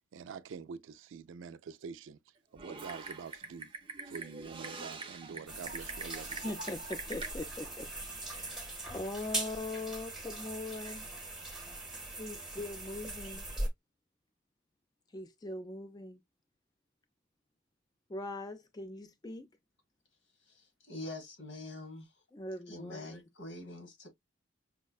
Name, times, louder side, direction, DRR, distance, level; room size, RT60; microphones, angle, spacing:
voice 1, 0.1-2.2 2.5-3.7 4.1-6.4, right 6 dB, 90° right, 0.4 m, -46 dB
Typing, 2.6-7.3, right 3 dB, 25° right, 0.6 m, -44 dB
sound 1, 5.5-13.7, right 2 dB, 5° right, 0.9 m, -41 dB
voice 2, 6.4-7.9 8.3-11.1 12.2-13.5 15.1-16.2 18.1-19.5 22.3-23.2, left 2 dB, 20° left, 0.4 m, -41 dB
voice 3, 20.5-22.1 22.7-24.1, left 2 dB, 80° left, 1.6 m, -45 dB
5.5 x 2.1 x 2.3 m
head